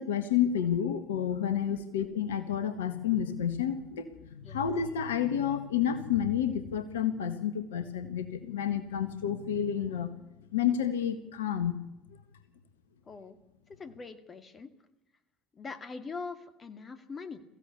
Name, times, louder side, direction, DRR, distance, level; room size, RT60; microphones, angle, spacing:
voice 1, 0.0-10.1 10.5-11.8, left 9 dB, 75° left, 10 dB, 1.6 m, -30 dB
voice 2, 13.7-14.7 15.5-17.4, left 4 dB, 30° left, 9 dB, 2.3 m, -42 dB
22.5 x 15.5 x 8.3 m, 0.94 s
figure-of-eight pair, 65°, 0 cm